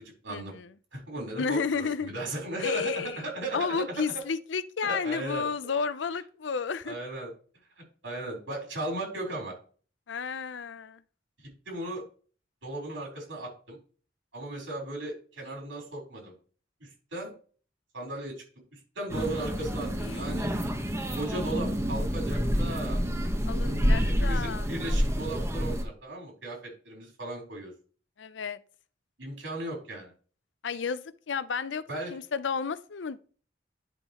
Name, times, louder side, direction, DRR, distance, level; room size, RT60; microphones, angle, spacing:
voice 1, 0.3-0.7 1.4-2.1 2.6-3.2 3.5-7.0 10.1-11.0 20.0-20.6 23.5-24.7 28.2-28.6 30.6-31.8 32.1-33.2, left 5 dB, 80° left, 0.6 m, -32 dB
voice 2, 0.9-3.6 4.8-5.4 6.8-7.3 8.0-9.5 11.7-12.0 12.6-13.8 14.3-16.3 16.8-17.3 17.9-18.3 18.7-20.5 21.2-23.0 23.9-27.7 29.2-30.1 31.9-32.1, right 2 dB, 85° right, 3.9 m, -36 dB
sound 1, 19.1-25.8, equal, 15° right, 1.1 m, -28 dB
10.5 x 5.6 x 3.0 m
head